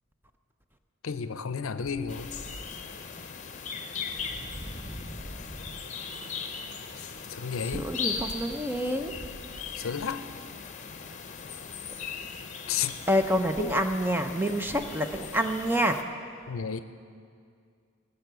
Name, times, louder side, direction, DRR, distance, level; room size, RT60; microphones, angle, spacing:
voice 1, 1.0-2.3 7.0-7.9 9.8-10.3 12.7-12.9 13.6-13.8 16.5-16.8, left 6 dB, 75° left, 12 dB, 0.6 m, -32 dB
sound 1, 2.1-16.0, left 5 dB, 35° left, 0.7 m, -39 dB
voice 2, 4.4-5.3 7.7-9.1 13.1-16.0, equal, 10° right, 6 dB, 0.5 m, -28 dB
18.5 x 6.8 x 6.8 m, 2.2 s
head